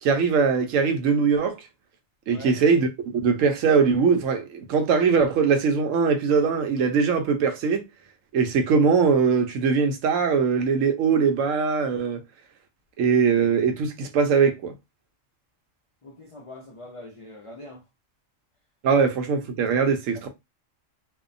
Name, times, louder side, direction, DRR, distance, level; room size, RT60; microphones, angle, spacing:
voice 1, 0.0-1.6 2.3-7.9 8.3-12.2 13.0-14.7 18.8-20.3, right 5 dB, 80° right, 1.0 m, -21 dB
voice 2, 2.3-2.6 16.0-17.8, left 1 dB, 65° left, 0.3 m, -43 dB
2.6 x 2.1 x 2.5 m
omnidirectional pair, 1.3 m